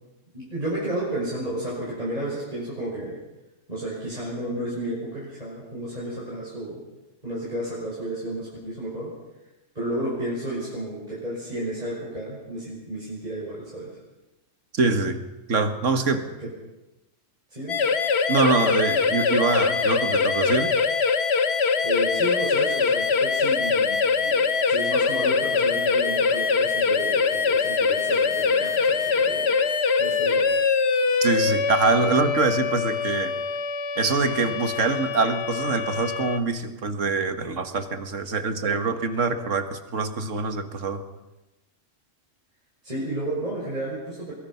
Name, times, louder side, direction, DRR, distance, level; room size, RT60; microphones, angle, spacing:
voice 1, 0.3-3.2 3.7-6.8 7.2-9.1 9.7-13.9 16.1-16.5 17.5-17.8 21.8-29.6 30.0-30.4 42.8-44.3, right 1 dB, 30° right, -7 dB, 6.3 m, -32 dB
voice 2, 14.7-15.2 15.5-16.3 18.3-20.7 31.2-33.3 34.0-41.0, right 4 dB, 75° right, 8 dB, 2.0 m, -24 dB
sound 1, 17.7-36.4, left 5 dB, 60° left, 1.3 m, -23 dB
23.0 x 22.5 x 5.8 m, 1.0 s
omnidirectional pair, 1.3 m